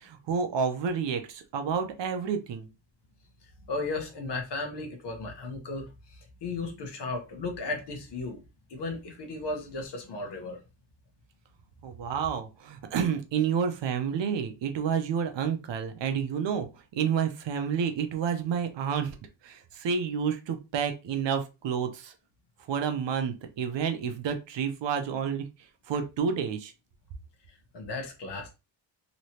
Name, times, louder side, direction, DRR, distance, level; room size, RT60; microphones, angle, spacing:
voice 1, 0.0-2.7 11.8-16.7 16.9-19.2 19.4-22.1 22.7-25.5 25.9-26.7, right 7 dB, 65° right, 7 dB, 0.7 m, -29 dB
voice 2, 3.7-8.4 8.7-10.6 27.7-28.5, left 3 dB, 60° left, 3 dB, 1.1 m, -35 dB
3.2 x 2.9 x 2.7 m, 0.28 s
wide cardioid pair, 175°, 47 cm